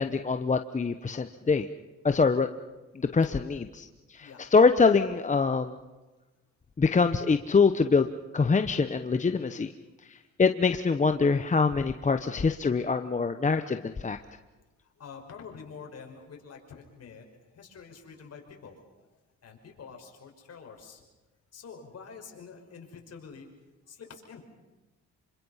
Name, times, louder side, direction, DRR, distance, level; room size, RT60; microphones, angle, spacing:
voice 1, 0.0-1.7 2.0-2.5 2.9-5.8 6.8-8.1 8.3-9.7 10.1-14.2, left 4 dB, 25° left, 8 dB, 1.0 m, -24 dB
voice 2, 14.8-19.1 19.4-21.0 21.5-23.5 23.9-24.4, left 5 dB, 55° left, 3 dB, 5.7 m, -47 dB
27.0 x 25.0 x 5.7 m, 1.1 s
cardioid pair, 90°, 30 cm